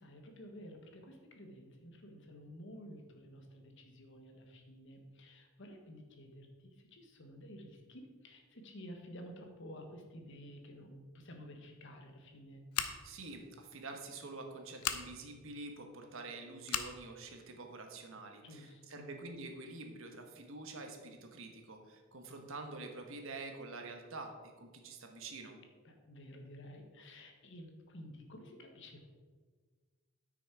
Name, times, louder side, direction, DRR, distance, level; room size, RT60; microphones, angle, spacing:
voice 1, 0.0-12.6 18.4-19.1 25.8-29.1, equal, 55° left, 4 dB, 1.3 m, -52 dB
Scissors, 12.7-13.2 14.8-15.0 16.6-16.9, left 9 dB, 85° left, 0.7 m, -36 dB
voice 2, 13.0-25.6, right 3 dB, 60° right, 4 dB, 1.2 m, -47 dB
9.5 x 6.2 x 4.6 m, 1.4 s
head